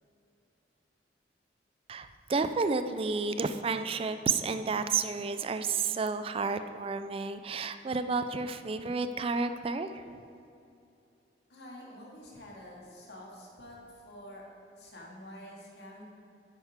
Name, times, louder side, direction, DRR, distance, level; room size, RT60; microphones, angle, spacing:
voice 1, 1.9-10.0, right 4 dB, 30° right, 10 dB, 0.4 m, -31 dB
voice 2, 11.5-14.4 14.7-16.0, left 1 dB, 70° left, -3 dB, 2.1 m, -48 dB
9.9 x 9.0 x 3.7 m, 2.6 s
head